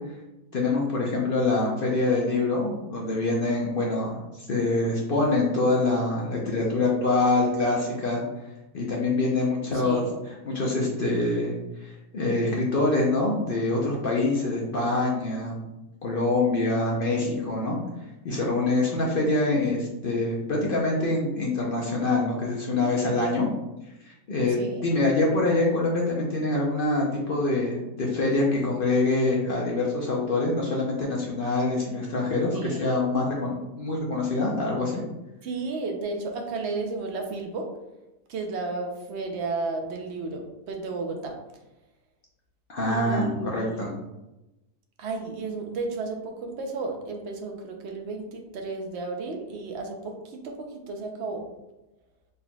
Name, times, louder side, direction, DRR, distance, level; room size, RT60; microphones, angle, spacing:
voice 1, 0.5-8.2 8.7-10.0 10.4-11.5 11.8-15.6 16.0-17.8 18.2-23.5 24.0-35.0 42.7-43.9, left 2 dB, 55° left, -3 dB, 0.6 m, -25 dB
voice 2, 9.7-10.2 24.5-24.9 32.5-33.0 35.4-37.7 38.3-41.4 42.9-43.8 45.0-51.4, right 3 dB, 65° right, 3 dB, 0.7 m, -33 dB
4.1 x 3.9 x 2.3 m, 0.98 s
omnidirectional pair, 1.7 m